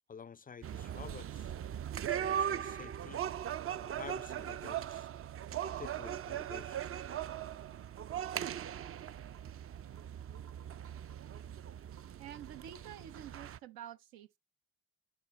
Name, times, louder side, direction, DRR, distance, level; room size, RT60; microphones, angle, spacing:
voice 1, 0.1-1.5 2.1-3.3 3.8-5.1 5.8-6.9, left 6 dB, 25° left, 0.4 m, -50 dB
sound 1, 0.6-13.6, right 10 dB, 40° right, 0.4 m, -39 dB
sound 2, 6.3-7.5 8.0-8.1 8.3-9.5 10.0-10.1 10.3-11.5 12.0-12.1 12.3-13.4, right 7 dB, 60° right, 3.1 m, -61 dB
voice 2, 12.2-14.4, right 10 dB, 85° right, 0.6 m, -49 dB
10.5 x 4.2 x 3.1 m
hypercardioid pair, 40°, 35 cm